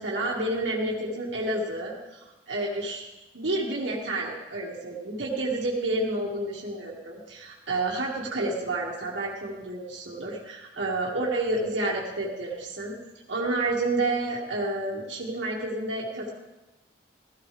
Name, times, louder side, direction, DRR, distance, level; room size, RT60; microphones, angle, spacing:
voice 1, 0.0-3.0 3.3-12.9 13.3-16.3, right 2 dB, 80° right, -4 dB, 2.0 m, -30 dB
16.5 x 14.0 x 3.4 m, 1.0 s
head